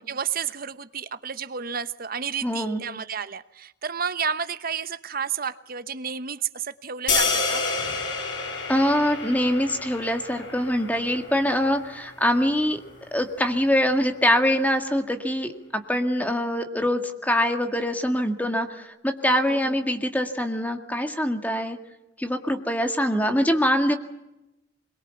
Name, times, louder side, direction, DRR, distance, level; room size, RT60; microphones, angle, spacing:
voice 1, 0.1-7.6 19.2-19.8, right 7 dB, 50° right, 13 dB, 1.0 m, -31 dB
voice 2, 2.4-2.8 8.7-12.8 13.1-21.8 22.2-24.0, equal, 10° left, 6 dB, 1.9 m, -24 dB
sound 1, 7.1-13.2, left 4 dB, 90° left, 7.7 m, -30 dB
24.0 x 22.5 x 7.1 m, 0.90 s
head